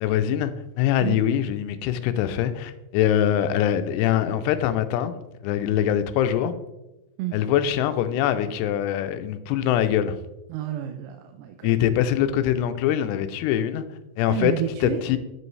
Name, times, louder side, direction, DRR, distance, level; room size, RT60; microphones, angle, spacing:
voice 1, 0.0-0.5 0.8-5.2 5.4-6.6 7.3-10.2 11.6-13.8 14.2-14.5 14.8-15.2, left 10 dB, 85° left, 10 dB, 2.6 m, -23 dB
voice 2, 10.5-11.7 14.3-15.0, right 12 dB, 80° right, 5 dB, 2.4 m, -30 dB
7.9 x 7.6 x 3.2 m, 0.96 s
omnidirectional pair, 4.9 m